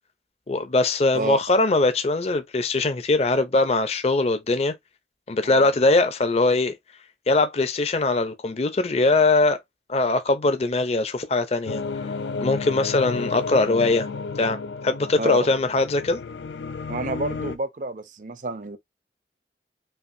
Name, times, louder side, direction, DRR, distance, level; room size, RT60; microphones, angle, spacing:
voice 1, 0.5-4.7 5.3-6.7 7.3-9.6 9.9-11.8 12.4-14.1 14.4-14.6 14.8-16.2, left 2 dB, 35° left, 0.5 m, -21 dB
sound 1, 11.7-17.6, left 4 dB, 90° left, 0.5 m, -32 dB
voice 2, 16.9-18.8, right 2 dB, 45° right, 0.5 m, -29 dB
5.6 x 2.5 x 2.6 m
head